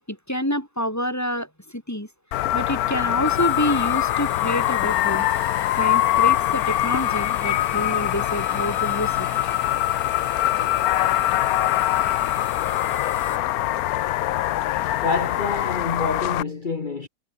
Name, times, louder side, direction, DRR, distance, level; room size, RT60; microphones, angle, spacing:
voice 1, 0.0-2.1 2.5-5.2 5.8-9.3, equal, 10° left, 2.5 m, -27 dB
sound 1, 2.3-16.4, left 14 dB, 85° left, 1.1 m, -23 dB
sound 2, 3.3-13.4, right 1 dB, 20° right, 5.1 m, -41 dB
voice 2, 15.0-17.1, left 4 dB, 35° left, 1.4 m, -27 dB
omnidirectional pair, 1.5 m